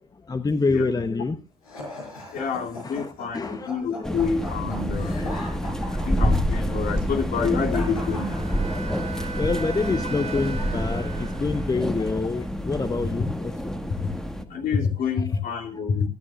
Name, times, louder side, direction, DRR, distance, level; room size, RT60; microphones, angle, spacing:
voice 1, 0.1-1.4 2.8-4.2 5.0-5.6 6.9-7.1 7.3-7.5 8.7-13.7 15.7-15.9, left 4 dB, 20° left, 1.0 m, -28 dB
voice 2, 0.7-1.1 2.3-5.2 6.0-8.3 12.3-12.5 14.5-16.1, left 6 dB, 50° left, 2.9 m, -28 dB
sound 1, 1.6-9.1, left 1 dB, 85° left, 4.8 m, -39 dB
sound 2, 4.0-14.4, equal, 5° left, 1.6 m, -27 dB
Wind instrument woodwind instrument, 7.9-12.0, right 6 dB, 35° right, 1.5 m, -39 dB
23.5 x 10.0 x 2.5 m
hypercardioid pair, 60°, 18 cm